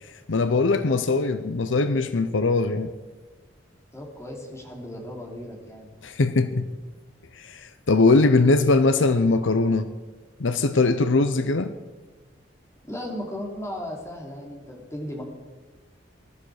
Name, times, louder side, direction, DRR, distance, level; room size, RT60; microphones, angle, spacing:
voice 1, 0.3-2.9 6.0-6.7 7.4-9.9 10.4-11.7, left 3 dB, 75° left, 11 dB, 0.7 m, -21 dB
voice 2, 3.9-5.9 12.8-15.2, left 1 dB, 15° left, -1 dB, 3.2 m, -36 dB
21.0 x 13.0 x 5.0 m, 1.3 s
head